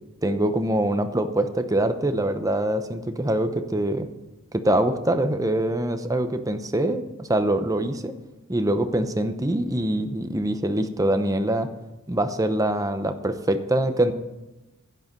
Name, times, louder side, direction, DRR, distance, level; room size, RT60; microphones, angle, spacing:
voice 1, 0.2-4.1 4.5-8.1 8.5-11.7 12.1-14.1, right 1 dB, 15° right, 8 dB, 0.8 m, -24 dB
11.5 x 9.9 x 5.3 m, 1.0 s
head